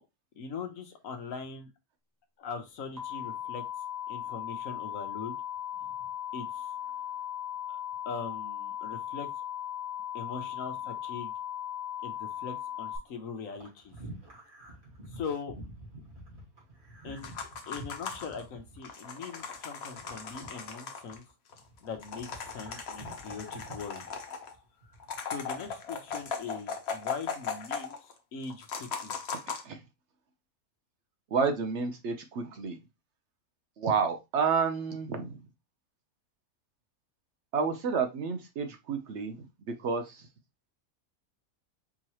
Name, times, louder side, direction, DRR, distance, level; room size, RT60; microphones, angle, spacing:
voice 1, 0.4-1.7 2.4-3.6 4.1-5.3 6.3-6.7 8.0-9.3 10.1-11.3 12.0-13.9 15.1-15.6 17.0-17.3 17.7-21.2 21.8-24.1 25.3-29.2, left 5 dB, 70° left, 6 dB, 1.2 m, -41 dB
sound 1, 3.0-13.0, left 11 dB, 15° right, 1.1 m, -37 dB
sound 2, 13.5-21.3 21.6-25.2 25.5-26.4, right 1 dB, 35° right, 2.0 m, -49 dB
sound 3, 17.2-18.4 18.8-21.2 21.5-21.6 21.8-24.5 25.0-28.1 28.4-29.6, left 5 dB, 55° left, 0.9 m, -38 dB
voice 2, 31.3-32.8 33.8-35.4 37.5-40.3, right 5 dB, 65° right, 7 dB, 0.8 m, -30 dB
4.6 x 3.1 x 2.9 m, 0.23 s
omnidirectional pair, 1.5 m